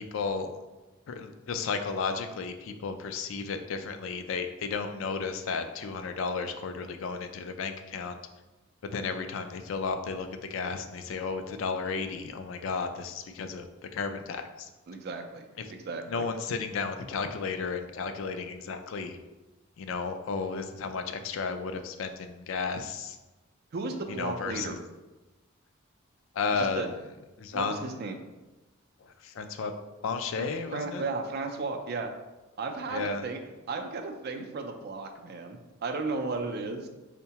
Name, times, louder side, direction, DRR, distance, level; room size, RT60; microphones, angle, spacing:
voice 1, 0.1-0.5 1.1-8.2 8.8-13.7 13.9-14.7 15.6-15.7 16.1-19.2 19.8-23.2 24.1-24.8 26.3-27.0 27.4-28.0 29.0-29.7 30.0-31.0 32.9-33.3, left 5 dB, 70° left, 7 dB, 0.3 m, -33 dB
voice 2, 14.9-16.3 23.7-24.7 26.6-26.9 27.5-28.2 30.4-32.1 32.6-33.4 33.7-36.9, right 3 dB, 50° right, 5 dB, 0.4 m, -35 dB
4.5 x 2.1 x 2.8 m, 1.1 s
head